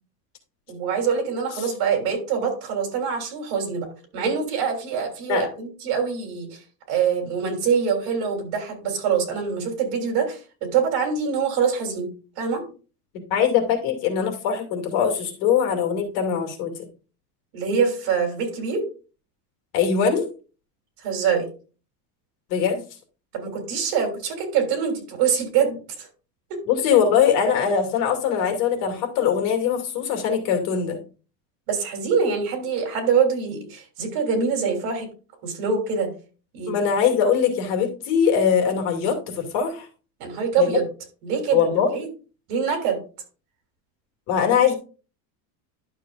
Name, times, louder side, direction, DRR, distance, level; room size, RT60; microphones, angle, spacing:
voice 1, 0.7-3.9 4.1-6.6 6.9-12.1 12.4-12.6 17.5-18.8 21.0-21.5 23.3-26.1 26.5-26.6 31.7-35.1 35.4-36.1 36.5-36.7 40.2-40.9 41.2-42.1 42.5-43.0, right 6 dB, 60° right, 3 dB, 3.4 m, -24 dB
voice 2, 13.3-16.7 19.7-20.3 22.5-22.8 26.7-31.0 36.7-39.9 40.6-40.8 41.5-41.9 44.3-44.7, left 7 dB, 70° left, 3 dB, 2.6 m, -21 dB
11.5 x 6.8 x 2.5 m, 0.36 s
cardioid pair, 175°, 43 cm